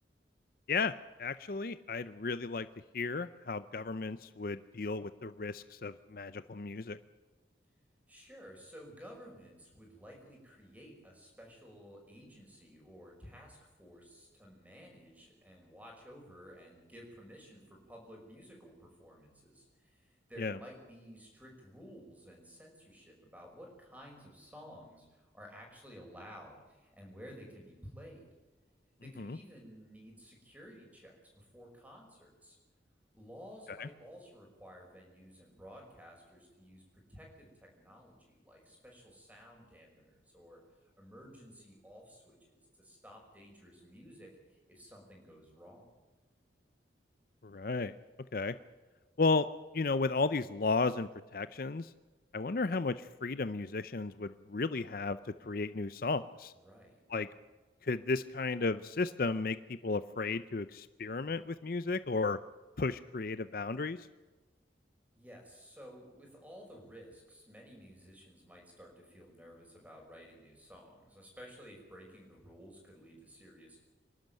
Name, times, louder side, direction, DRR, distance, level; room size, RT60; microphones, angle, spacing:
voice 1, 1.2-2.7 2.9-7.0 20.4-20.6 29.2-29.4 33.8-33.9 47.4-48.0 48.3-48.6 49.2-49.5 49.7-51.9 52.3-56.5 57.1-57.3 57.8-62.4 62.8-64.1, left 3 dB, 50° left, 14 dB, 0.6 m, -34 dB
voice 2, 8.1-28.3 29.0-32.6 33.1-45.9 56.5-57.0 65.1-73.8, equal, 10° right, 0 dB, 5.8 m, -54 dB
25.5 x 12.0 x 9.2 m, 1.2 s
head